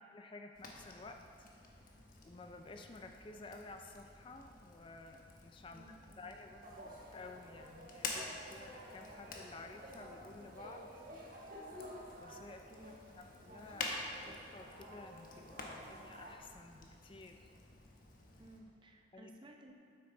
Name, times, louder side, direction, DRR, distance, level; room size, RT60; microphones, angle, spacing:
voice 1, 0.1-1.5 2.2-5.9 6.2-10.9 12.2-17.5 19.1-19.3, left 3 dB, 30° left, 5 dB, 0.4 m, -53 dB
Fire, 0.5-18.6, left 3 dB, 50° left, 1.1 m, -50 dB
voice 2, 5.7-6.4 12.8-13.3 18.4-19.7, right 1 dB, 25° right, 1 dB, 0.8 m, -58 dB
sound 1, 6.6-16.4, equal, 50° right, 1.3 m, -53 dB
9.4 x 8.5 x 3.8 m, 2.4 s
head